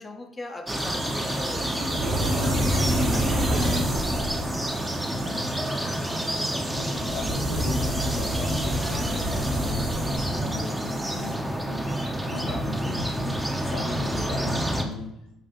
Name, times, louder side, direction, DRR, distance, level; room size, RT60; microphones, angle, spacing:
voice 1, 0.0-1.8 12.4-12.9, left 2 dB, 25° left, 5 dB, 0.6 m, -39 dB
sound 1, 0.7-14.8, right 1 dB, 10° right, 0.6 m, -29 dB
sound 2, 0.7-11.3, equal, 60° right, 1.1 m, -29 dB
voice 2, 5.1-5.5 6.7-15.1, left 4 dB, 75° left, 0 dB, 0.6 m, -38 dB
5.6 x 2.4 x 2.9 m, 0.84 s
hypercardioid pair, 55°, 0 cm